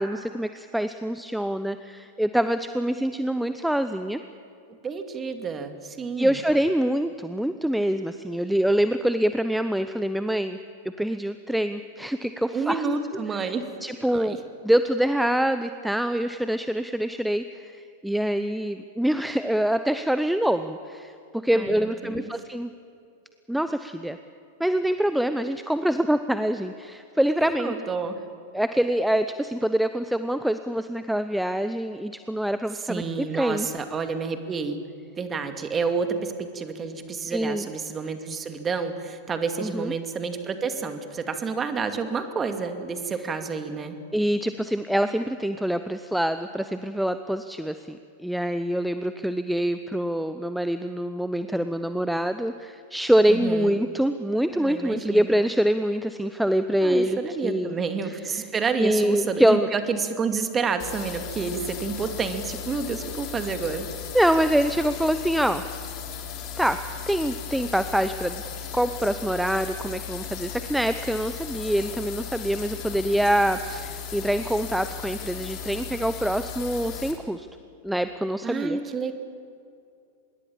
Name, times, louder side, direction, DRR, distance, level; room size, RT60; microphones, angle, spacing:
voice 1, 0.0-4.2 6.2-10.6 11.0-12.8 13.4-13.5 13.8-14.4 14.6-21.1 21.4-22.7 23.5-24.2 24.6-27.7 28.5-33.0 33.3-33.7 37.3-37.7 39.6-39.9 44.1-57.8 58.3-58.5 58.8-59.7 64.1-65.6 66.6-66.8 67.0-68.4 68.7-77.5 77.8-78.8, right 1 dB, ahead, 10 dB, 0.8 m, -25 dB
voice 2, 4.8-6.4 12.5-13.7 14.1-14.4 21.5-22.3 27.6-28.2 32.9-34.8 35.1-44.0 53.3-53.8 54.5-55.4 56.8-63.9 78.4-79.1, right 5 dB, 20° right, 7 dB, 2.4 m, -29 dB
sound 1, 60.8-77.1, left 8 dB, 40° left, 4.0 m, -36 dB
26.0 x 21.5 x 7.4 m, 2.5 s
figure-of-eight pair, 95°, 0 cm